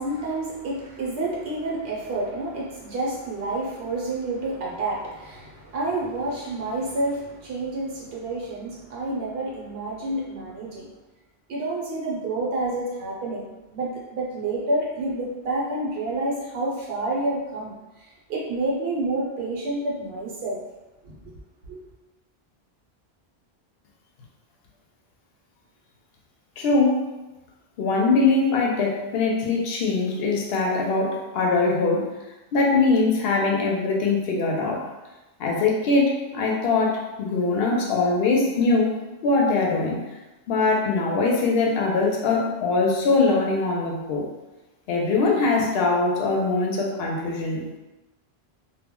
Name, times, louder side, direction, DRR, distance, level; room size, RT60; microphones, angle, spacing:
voice 1, 0.0-10.9 11.5-13.5 13.7-20.6 21.0-21.2 21.7-21.8, right 2 dB, 65° right, -4 dB, 0.9 m, -29 dB
voice 2, 26.6-27.1 27.8-32.1 32.5-34.8 35.4-39.0 39.2-40.0 40.5-44.3 44.9-47.8, left 3 dB, 70° left, -1 dB, 0.8 m, -22 dB
2.2 x 2.1 x 3.5 m, 1.1 s
omnidirectional pair, 1.1 m